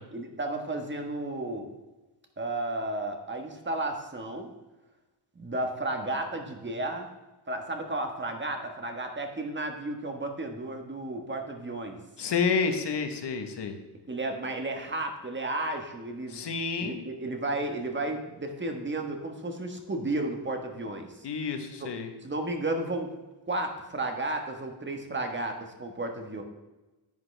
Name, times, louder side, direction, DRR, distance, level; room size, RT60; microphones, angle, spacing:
voice 1, 0.1-1.7 2.4-4.5 5.3-7.1 7.5-12.0 14.1-16.4 16.8-21.3 21.8-21.9 22.2-23.1 23.5-26.4, right 2 dB, 25° right, 4 dB, 1.4 m, -33 dB
voice 2, 12.2-13.8 16.3-17.0 21.2-22.1, left 5 dB, 75° left, 6 dB, 1.3 m, -29 dB
10.5 x 9.1 x 3.4 m, 1.1 s
wide cardioid pair, 130°, 42 cm